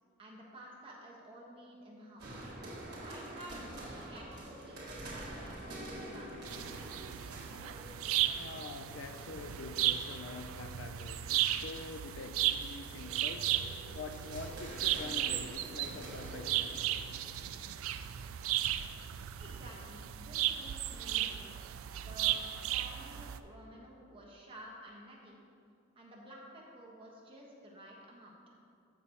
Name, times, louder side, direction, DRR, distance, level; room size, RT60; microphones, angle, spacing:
voice 1, 0.2-2.5 3.0-6.4 19.4-21.4 21.9-25.4 25.9-28.4, equal, 25° right, 1.2 m, -52 dB
sound 1, 2.2-17.9, right 1 dB, 50° right, 1.7 m, -48 dB
sound 2, 6.5-23.4, right 12 dB, 80° right, 0.4 m, -35 dB
voice 2, 8.4-16.9, left 4 dB, 65° left, 0.4 m, -46 dB
14.0 x 6.1 x 2.9 m
head